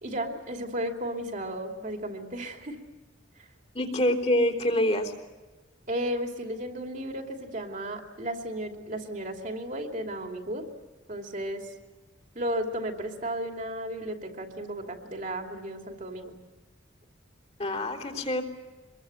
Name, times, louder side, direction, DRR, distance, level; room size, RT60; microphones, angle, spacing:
voice 1, 0.0-2.8 3.4-3.5 5.9-10.7 11.1-11.7 12.3-16.3, right 1 dB, 45° right, 3 dB, 2.8 m, -34 dB
voice 2, 3.7-5.1 17.6-18.4, left 1 dB, 35° left, 3 dB, 3.5 m, -26 dB
25.5 x 22.5 x 7.9 m, 1.2 s
head